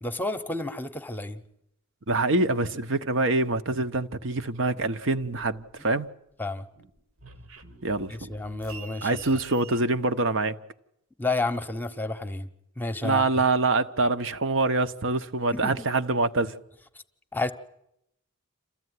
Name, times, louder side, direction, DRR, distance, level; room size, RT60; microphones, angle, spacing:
voice 1, 0.0-1.4 6.4-6.7 8.1-9.2 11.2-12.5 12.8-13.2 15.5-15.7 17.3-17.5, left 2 dB, 10° left, 0.9 m, -30 dB
voice 2, 2.1-6.1 7.8-8.3 9.0-10.6 13.0-16.5, right 3 dB, 60° right, 0.9 m, -25 dB
sound 1, 4.7-6.1 6.4-9.8, right 5 dB, 85° right, 1.8 m, -48 dB
28.0 x 14.5 x 9.6 m
head